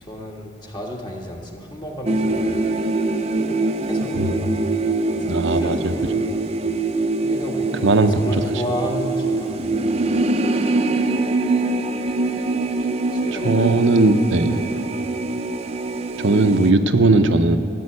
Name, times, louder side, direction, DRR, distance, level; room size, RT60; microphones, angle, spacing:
voice 1, 0.0-2.7 3.3-4.7 5.1-6.4 7.2-10.2 13.1-13.8 14.4-14.7, equal, 25° left, 0 dB, 1.6 m, -33 dB
sound 1, 2.0-16.7, right 2 dB, 35° right, 0.6 m, -23 dB
voice 2, 5.3-5.9 7.8-8.2 13.4-14.6 16.2-17.6, right 2 dB, 85° right, 7 dB, 0.7 m, -17 dB
14.0 x 7.8 x 9.6 m, 2.4 s
head